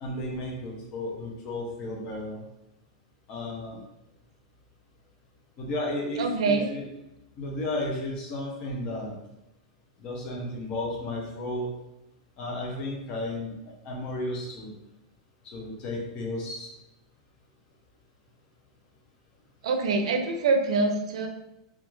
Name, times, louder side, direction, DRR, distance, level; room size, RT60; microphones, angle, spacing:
voice 1, 0.0-2.4 3.3-3.8 5.6-6.8 7.4-9.1 10.0-11.7 12.4-13.5 13.8-14.7 15.4-16.7, left 1 dB, 25° left, -2 dB, 0.5 m, -33 dB
voice 2, 6.2-6.7 19.6-21.3, right 3 dB, 80° right, 5 dB, 0.4 m, -25 dB
2.3 x 2.2 x 3.0 m, 0.89 s
supercardioid pair, 175°, 3 cm